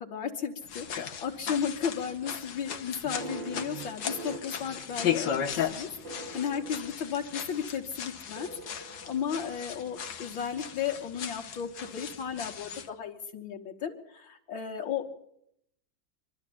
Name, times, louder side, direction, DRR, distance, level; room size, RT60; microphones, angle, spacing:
voice 1, 0.0-5.9 6.3-15.1, left 7 dB, 90° left, -1 dB, 2.2 m, -34 dB
sound 1, 0.6-12.9, left 8 dB, 70° left, 1.8 m, -36 dB
sound 2, 3.0-7.6 8.4-9.9, right 2 dB, 70° right, 2.7 m, -44 dB
24.5 x 12.5 x 8.7 m, 0.75 s
omnidirectional pair, 2.1 m